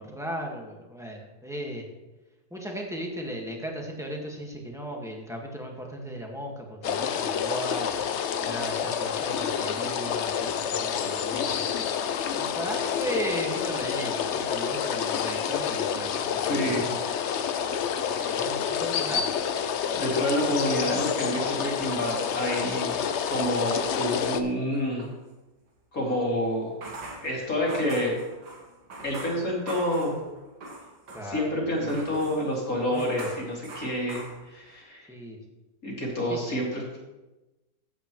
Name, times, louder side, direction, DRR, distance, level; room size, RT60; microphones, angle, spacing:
voice 1, 0.0-1.9 2.5-7.9 8.4-11.8 12.3-17.0 18.3-19.3 31.1-32.0 32.9-33.3 35.1-35.4 36.3-36.6, equal, ahead, 0 dB, 1.5 m, -36 dB
sound 1, 6.8-24.4, left 8 dB, 70° left, 0.6 m, -28 dB
voice 2, 16.5-16.9 18.1-18.4 19.9-22.9 23.3-25.1 25.9-26.8 27.2-28.2 29.0-30.2 31.2-35.1 35.8-37.0, equal, 50° left, -3 dB, 3.1 m, -28 dB
sound 2, 19.5-20.7 21.0-25.2 26.6-31.5 31.8-34.8, right 2 dB, 65° right, 2.2 m, -44 dB
15.0 x 8.3 x 3.1 m, 1.1 s
omnidirectional pair, 1.9 m